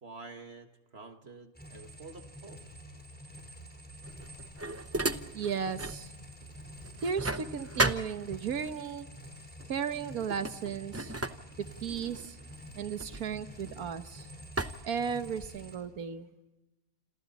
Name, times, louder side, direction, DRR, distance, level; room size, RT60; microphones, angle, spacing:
voice 1, 0.0-2.6, right 3 dB, 45° right, 6 dB, 1.8 m, -48 dB
sound 1, 1.5-15.8, equal, 5° left, 5.0 m, -48 dB
sound 2, 4.0-6.1 6.4-8.7 9.6-9.8 10.2-14.0 14.6-15.7, right 2 dB, 15° right, 0.5 m, -35 dB
voice 2, 5.3-6.1 7.0-9.1 9.7-11.1 11.6-12.4 12.7-14.3 14.8-16.3, right 7 dB, 75° right, 10 dB, 1.6 m, -35 dB
27.5 x 27.0 x 4.1 m, 1.0 s
omnidirectional pair, 1.6 m